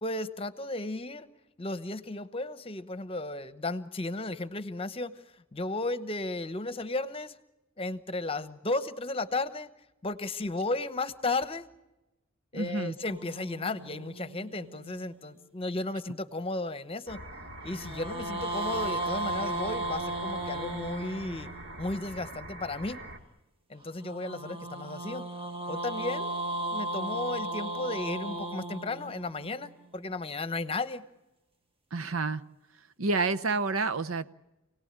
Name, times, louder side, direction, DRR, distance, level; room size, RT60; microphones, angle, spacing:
voice 1, 0.0-1.3 1.6-5.2 5.5-7.3 7.8-9.7 10.0-11.7 12.5-17.2 17.6-21.5 21.8-23.0 23.7-25.3 25.7-26.3 26.7-31.0, left 2 dB, 30° left, 13 dB, 1.0 m, -34 dB
voice 2, 12.5-13.0 31.9-32.4 33.0-34.3, right 3 dB, 85° right, 13 dB, 0.9 m, -29 dB
sound 1, 13.1-15.5 17.7-21.9 24.0-30.2, right 2 dB, 25° right, 1.6 m, -36 dB
sound 2, 17.1-23.2, right 1 dB, 60° right, 2.4 m, -44 dB
28.0 x 18.5 x 8.9 m, 1.0 s
head